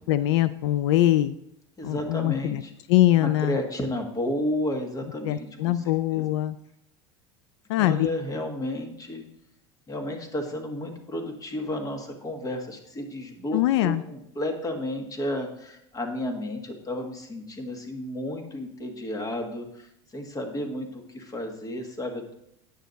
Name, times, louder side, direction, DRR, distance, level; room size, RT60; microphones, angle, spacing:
voice 1, 0.1-1.4 1.8-2.6 2.9-3.6 5.2-6.6 7.7-8.1 13.5-14.0, left 14 dB, 85° left, 14 dB, 0.4 m, -22 dB
voice 2, 1.8-2.7 3.2-5.7 6.1-6.3 7.8-9.2 9.9-22.3, left 1 dB, 25° left, 4 dB, 1.6 m, -32 dB
9.1 x 6.5 x 4.0 m, 0.78 s
supercardioid pair, 115°, 14 cm